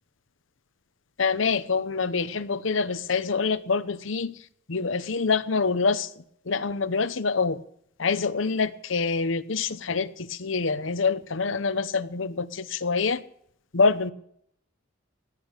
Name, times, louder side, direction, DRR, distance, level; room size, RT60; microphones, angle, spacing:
voice 1, 1.2-4.3 4.7-6.1 6.5-7.6 8.0-13.2 13.7-14.1, left 4 dB, 75° left, 0.9 m, -26 dB
17.0 x 10.0 x 6.7 m
head